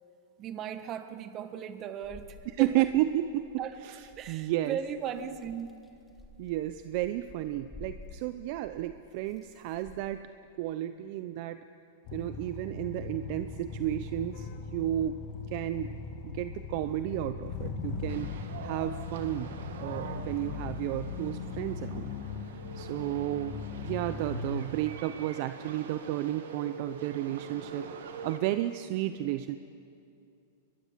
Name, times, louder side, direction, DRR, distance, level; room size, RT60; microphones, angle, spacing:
voice 1, 0.4-2.9 3.6-3.8 4.2-5.7, right 8 dB, 30° right, 10 dB, 1.3 m, -37 dB
sound 1, 2.0-10.2, left 3 dB, 10° left, 1.8 m, -53 dB
voice 2, 2.6-4.0 4.3-4.8 6.4-10.2 10.6-11.6 12.1-15.2 15.5-16.0 16.2-19.5 19.8-22.1 22.7-27.9 28.2-29.6, right 14 dB, 50° right, 11 dB, 0.7 m, -32 dB
sound 2, 12.0-24.6, left 4 dB, 40° left, 2.3 m, -39 dB
sound 3, 18.1-28.4, right 5 dB, 80° right, 2.2 m, -45 dB
23.0 x 22.0 x 7.5 m, 2.6 s
supercardioid pair, 145°, 0 cm